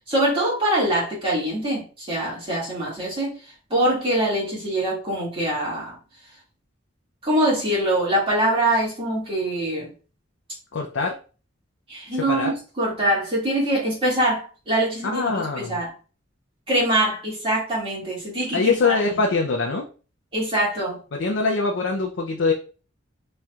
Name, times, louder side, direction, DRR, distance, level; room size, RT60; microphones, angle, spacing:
voice 1, 0.1-6.0 7.2-9.9 11.9-15.9 16.7-19.2 20.3-21.0, right 1 dB, 30° right, -6 dB, 2.1 m, -24 dB
voice 2, 10.7-11.1 12.3-12.5 15.1-15.8 18.5-19.9 21.1-22.5, left 4 dB, 70° left, 1 dB, 0.5 m, -23 dB
4.3 x 3.2 x 2.3 m, 0.36 s
head